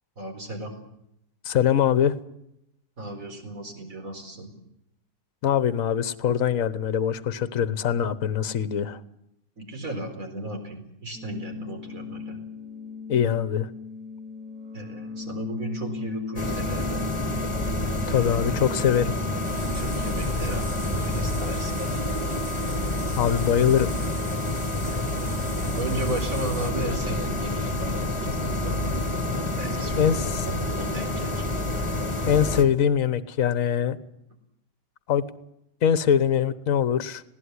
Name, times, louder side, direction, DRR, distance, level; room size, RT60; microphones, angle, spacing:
voice 1, 0.2-0.7 3.0-4.5 9.6-12.4 14.7-17.0 18.0-18.4 19.7-21.8 24.9-25.2 25.8-29.0 29.5-31.4, right 1 dB, 50° right, 4 dB, 4.8 m, -35 dB
voice 2, 1.4-2.1 5.4-9.0 13.1-13.7 18.1-19.1 23.2-23.9 30.0-30.1 32.3-34.0 35.1-35.2 35.8-37.2, left 8 dB, 55° left, 14 dB, 1.4 m, -22 dB
sound 1, 11.1-21.1, left 5 dB, 70° right, 4.8 m, -38 dB
sound 2, 16.4-32.6, left 1 dB, 20° left, 1.8 m, -28 dB
sound 3, 19.4-26.7, right 3 dB, 20° right, 1.3 m, -41 dB
20.0 x 17.0 x 9.7 m, 0.79 s
omnidirectional pair, 1.8 m